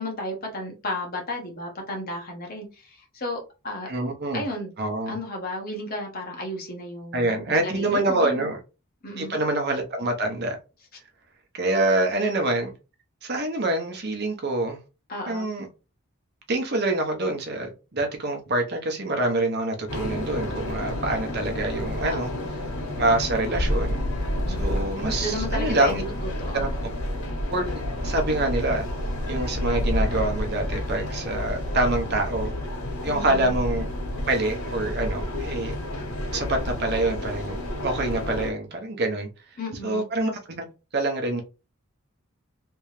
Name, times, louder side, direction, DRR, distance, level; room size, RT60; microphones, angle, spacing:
voice 1, 0.0-3.9 4.3-4.7 5.1-8.5 9.0-9.4 15.1-15.5 22.0-22.5 24.4-24.7 25.2-26.9 33.1-33.6 39.6-40.1, left 1 dB, 40° left, 1.3 m, -33 dB
voice 2, 3.9-4.4 4.8-5.1 7.1-8.6 9.2-10.6 11.5-12.7 13.2-14.8 15.3-15.7 16.5-22.3 23.0-24.0 24.6-26.0 26.5-26.7 27.5-28.8 29.3-32.5 33.0-33.9 34.3-35.7 36.3-39.3 39.8-40.6 40.9-41.4, right 2 dB, 50° right, 0.9 m, -26 dB
sound 1, 19.9-38.5, left 1 dB, 80° left, 1.5 m, -29 dB
3.4 x 3.0 x 3.2 m
head